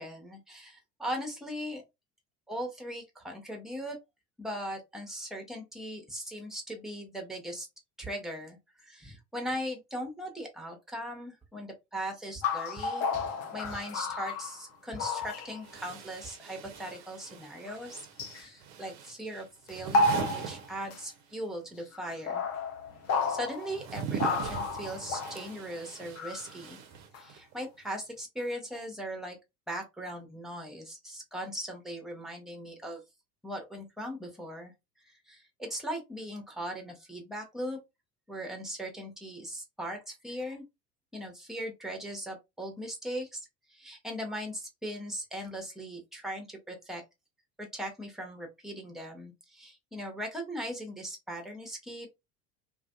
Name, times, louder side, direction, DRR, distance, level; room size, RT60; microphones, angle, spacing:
voice 1, 0.0-1.8 2.5-4.0 4.4-7.7 8.0-13.2 13.5-18.1 18.3-22.5 23.3-26.8 27.2-29.4 29.7-33.0 33.4-34.7 35.0-37.8 38.3-40.6 41.1-47.0 47.6-52.1, equal, ahead, 0.7 m, -39 dB
sound 1, 12.4-14.7 15.0-15.6 18.2-18.4 19.7-21.0 21.9-23.8 24.2-25.5 26.2-26.5 27.1-27.2, left 3 dB, 35° left, 0.5 m, -31 dB
sound 2, 14.7-14.8 15.6-21.4 21.7-27.5, right 7 dB, 40° right, 0.5 m, -42 dB
2.5 x 2.2 x 2.4 m
figure-of-eight pair, 65°, 46 cm